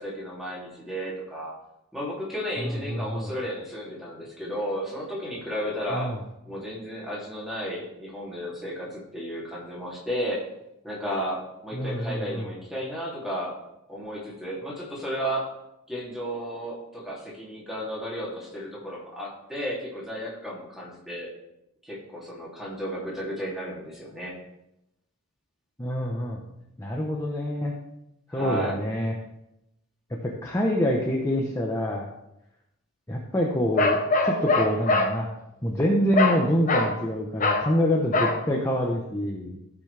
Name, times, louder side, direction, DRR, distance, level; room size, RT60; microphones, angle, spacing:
voice 1, 0.0-1.5 1.9-6.1 6.4-10.4 10.8-13.5 13.9-15.5 15.9-21.3 21.8-24.4 28.3-28.8, equal, ahead, -6 dB, 2.8 m, -33 dB
voice 2, 2.7-3.3 5.9-6.2 11.7-12.5 25.8-26.5 26.8-27.7 28.3-29.1 30.1-32.1 33.1-35.3 35.6-39.6, equal, 15° left, -2 dB, 0.9 m, -26 dB
Bark, 33.8-35.1 36.2-36.4 36.7-37.0 37.4-37.7 38.1-38.4, left 2 dB, 35° left, 1.1 m, -22 dB
15.5 x 6.1 x 3.4 m, 0.86 s
head